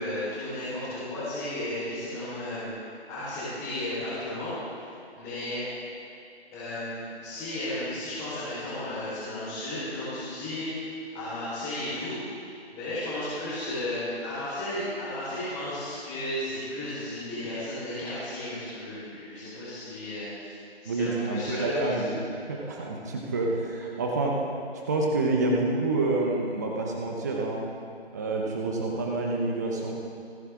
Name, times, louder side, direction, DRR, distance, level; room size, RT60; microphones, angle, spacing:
voice 1, 0.0-2.7 3.1-4.9 5.2-5.6 6.5-10.7 11.1-12.2 12.7-20.5 20.8-22.1, left 1 dB, 10° left, -16 dB, 4.4 m, -34 dB
voice 2, 20.9-24.4 24.9-27.6 28.1-29.9, right 2 dB, 15° right, -1 dB, 0.8 m, -28 dB
29.0 x 9.8 x 3.8 m, 2.4 s
figure-of-eight pair, 160°, 32 cm